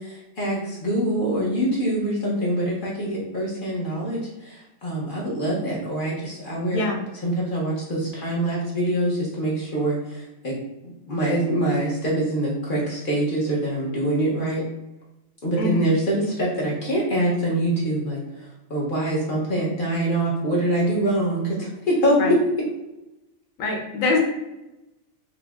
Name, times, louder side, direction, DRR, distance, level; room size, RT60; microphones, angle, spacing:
voice 1, 0.0-6.8 7.2-10.6 11.1-14.6 15.4-22.4, right 1 dB, 45° left, -4 dB, 0.8 m, -24 dB
voice 2, 15.6-15.9 22.2-22.3 23.6-24.2, left 3 dB, 85° left, 1 dB, 1.1 m, -23 dB
5.0 x 2.0 x 2.3 m, 0.97 s
omnidirectional pair, 1.4 m